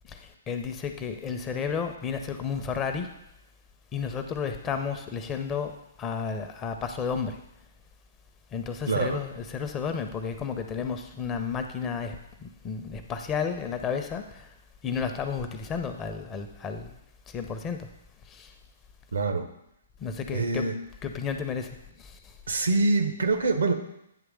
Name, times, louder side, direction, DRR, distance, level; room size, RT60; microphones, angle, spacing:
voice 1, 0.1-3.1 3.9-5.7 6.0-7.4 8.5-12.1 12.4-14.5 14.8-17.0 17.3-17.8 18.3-18.5 20.0-20.6 21.0-21.7 22.0-22.2, left 6 dB, 20° left, 6 dB, 0.7 m, -32 dB
voice 2, 8.9-9.2 19.1-19.5 20.3-20.8 22.5-23.7, right 3 dB, 70° right, 7 dB, 0.8 m, -25 dB
9.1 x 3.2 x 6.2 m, 0.81 s
figure-of-eight pair, 120°, 0 cm